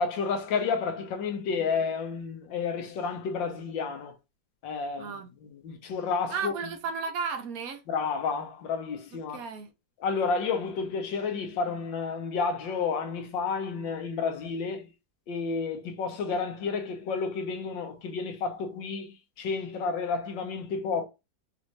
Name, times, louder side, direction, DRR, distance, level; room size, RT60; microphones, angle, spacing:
voice 1, 0.0-4.1 4.6-6.5 7.9-9.4 10.0-14.9 15.3-21.1, left 5 dB, 80° left, 1.6 m, -31 dB
voice 2, 5.0-5.3 6.3-7.8 9.3-9.7, right 5 dB, 60° right, 1.0 m, -34 dB
5.5 x 2.6 x 3.0 m
omnidirectional pair, 2.0 m